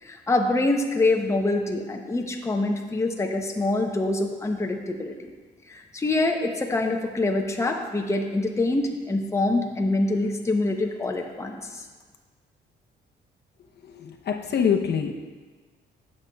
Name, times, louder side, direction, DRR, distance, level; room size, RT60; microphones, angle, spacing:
voice 1, 0.0-5.3 5.7-11.8, left 2 dB, 15° left, 3 dB, 0.7 m, -25 dB
voice 2, 14.0-15.1, left 7 dB, 55° left, 3 dB, 0.7 m, -24 dB
11.0 x 7.4 x 2.3 m, 1.4 s
cardioid pair, 90°, 20 cm